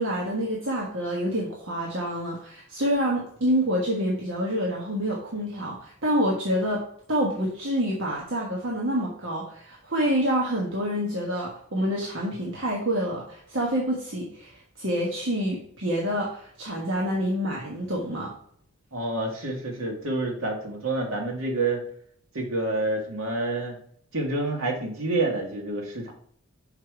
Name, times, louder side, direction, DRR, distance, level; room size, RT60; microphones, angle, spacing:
voice 1, 0.0-18.4, equal, 65° right, -3 dB, 1.3 m, -27 dB
voice 2, 18.9-21.8 22.3-23.8 24.1-26.1, right 2 dB, 90° right, 1 dB, 1.8 m, -28 dB
5.8 x 5.0 x 4.6 m, 0.63 s
head